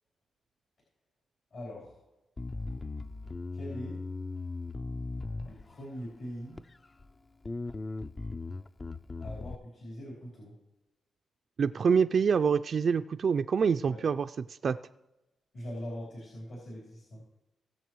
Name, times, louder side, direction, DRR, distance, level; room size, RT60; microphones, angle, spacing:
voice 1, 1.5-2.0 3.5-4.0 5.4-6.6 9.2-10.6 13.9-14.0 15.5-17.3, equal, 60° left, -6 dB, 3.7 m, -42 dB
Bass guitar, 2.4-5.9 6.6-7.1 7.4-9.6, left 3 dB, 30° left, 0.4 m, -38 dB
voice 2, 11.6-14.3 14.6-14.8, right 6 dB, 55° right, 9 dB, 0.3 m, -26 dB
19.0 x 6.6 x 3.1 m, 0.98 s
cardioid pair, 105°, 0 cm